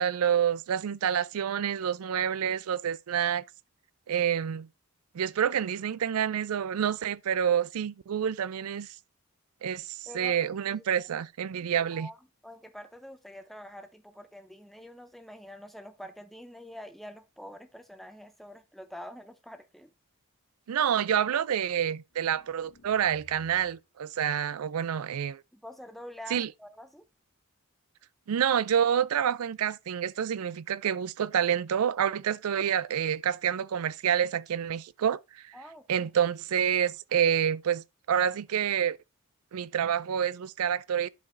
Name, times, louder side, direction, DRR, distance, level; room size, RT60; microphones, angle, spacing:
voice 1, 0.0-3.4 4.1-4.7 5.1-8.9 9.6-12.1 20.7-25.4 26.3-26.5 28.3-35.4 35.9-39.0 39.5-41.1, right 8 dB, 80° right, 0.4 m, -28 dB
voice 2, 10.1-11.1 11.5-12.2 12.4-19.9 25.5-27.1 35.5-36.1, equal, ahead, 0.7 m, -46 dB
sound 1, 22.1-23.9, equal, 85° left, 2.5 m, -58 dB
11.5 x 4.6 x 2.6 m
head